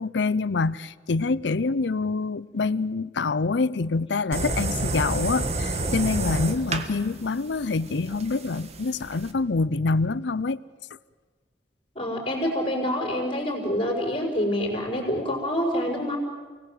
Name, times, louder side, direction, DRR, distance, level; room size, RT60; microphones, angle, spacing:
voice 1, 0.0-10.6, left 3 dB, 90° left, 18 dB, 0.6 m, -26 dB
sound 1, 4.3-9.3, right 2 dB, 40° right, 1.6 m, -29 dB
voice 2, 11.9-16.2, equal, 35° left, -4 dB, 4.9 m, -26 dB
29.0 x 19.0 x 7.8 m, 1.4 s
head